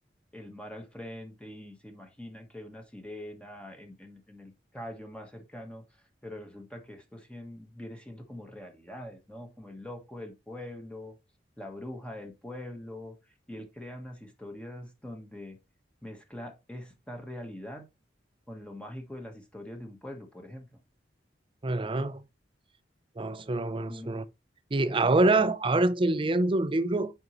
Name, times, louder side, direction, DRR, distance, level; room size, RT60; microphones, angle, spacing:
voice 1, 0.3-11.2 11.6-15.6 16.0-17.9 18.5-20.7 23.9-24.2 25.4-25.5, left 1 dB, 5° left, 1.2 m, -43 dB
voice 2, 21.6-22.2 23.2-24.2 24.7-27.1, right 2 dB, 30° right, 0.5 m, -25 dB
8.0 x 5.3 x 3.0 m
head